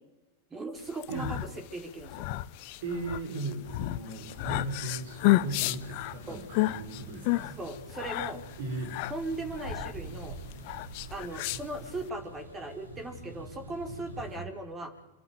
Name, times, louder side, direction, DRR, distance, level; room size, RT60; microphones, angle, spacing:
voice 1, 0.5-1.4 1.7-2.3 6.3-6.4 7.6-8.4 9.1-10.4 11.1-14.9, right 2 dB, 20° right, 7 dB, 4.4 m, -38 dB
sound 1, 0.9-12.1, left 18 dB, 45° left, 0.9 m, -32 dB
voice 2, 2.8-7.6 8.6-9.0 14.3-14.5, right 2 dB, 55° right, 7 dB, 6.6 m, -37 dB
sound 2, 4.2-14.3, right 2 dB, 80° right, 5.4 m, -46 dB
26.5 x 12.5 x 9.3 m, 1.1 s
figure-of-eight pair, 90°, 0 cm